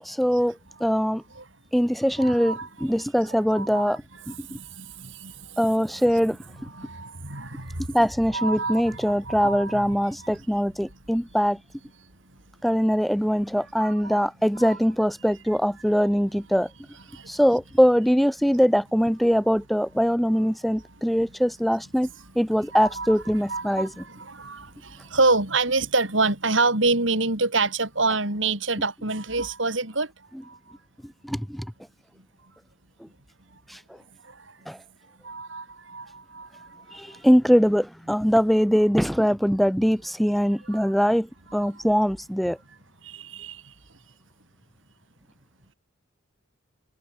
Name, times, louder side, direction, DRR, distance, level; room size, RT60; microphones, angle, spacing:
voice 1, 0.0-1.2 1.7-4.3 5.6-6.4 7.9-11.6 12.6-16.7 17.3-22.1 22.4-23.9 31.2-31.6 33.7-33.8 34.7-34.8 36.9-42.6, equal, ahead, 0.8 m, -22 dB
voice 2, 2.2-2.9 3.3-4.0 4.3-5.6 6.7-7.9 8.3-10.3 13.8-14.3 14.6-14.8 17.1-17.3 22.7-23.1 23.3-30.1 30.4-30.6 35.2-37.0 40.6-40.9 41.5-41.8 43.0-43.6, right 3 dB, 65° right, 6.1 m, -28 dB
head